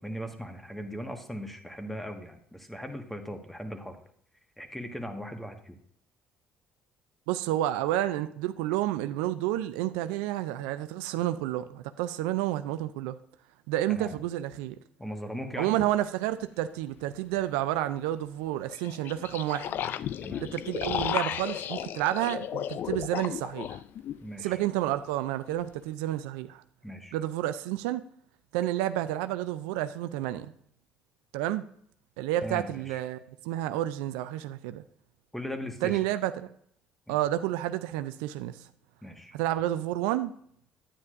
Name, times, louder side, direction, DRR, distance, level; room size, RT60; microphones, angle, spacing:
voice 1, 0.0-4.0 4.6-5.8 13.9-14.2 15.0-15.8 20.2-20.4 24.2-24.6 26.8-27.1 32.4-33.0 35.3-36.0 37.1-37.2 39.0-39.4, equal, 5° left, 1.5 m, -38 dB
voice 2, 7.3-13.2 13.7-14.8 15.5-19.8 20.4-23.8 24.4-26.6 27.1-28.0 28.5-30.5 31.3-31.6 32.2-34.8 35.8-36.5 37.1-38.6 39.3-40.3, right 14 dB, 80° right, 0.4 m, -30 dB
sound 1, 15.8-15.9 18.7-24.2, left 10 dB, 60° left, 0.3 m, -34 dB
9.9 x 9.5 x 2.6 m
hypercardioid pair, 55°, 4 cm